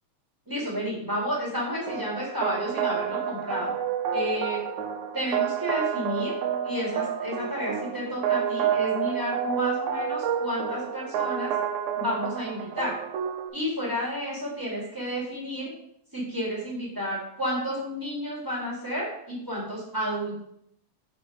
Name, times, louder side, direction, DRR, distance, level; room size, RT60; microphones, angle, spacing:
voice 1, 0.5-3.7 4.1-4.6 5.1-6.3 6.6-11.5 12.0-13.0 13.5-15.7 16.1-20.4, equal, 10° right, -6 dB, 2.0 m, -31 dB
sound 1, 1.9-13.5, right 8 dB, 80° right, 2.0 m, -29 dB
5.3 x 5.2 x 4.7 m, 0.72 s
omnidirectional pair, 3.3 m